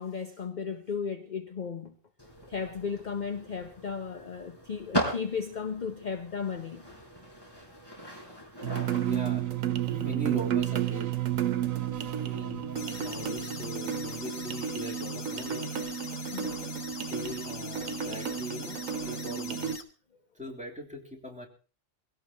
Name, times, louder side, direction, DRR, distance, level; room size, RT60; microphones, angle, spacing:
voice 1, 0.0-1.9 2.4-6.8 16.3-16.6, left 6 dB, 40° left, 1.0 m, -35 dB
sound 1, 2.2-13.7, equal, 20° left, 4.7 m, -40 dB
sound 2, 8.6-19.8, right 10 dB, 90° right, 1.3 m, -32 dB
voice 2, 9.0-9.4 9.9-11.1 12.2-15.7 17.1-18.8 19.0-19.7 20.4-21.5, equal, 5° right, 3.5 m, -40 dB
sound 3, 12.8-19.8, left 4 dB, 80° left, 1.8 m, -43 dB
23.0 x 17.0 x 3.0 m
omnidirectional pair, 1.3 m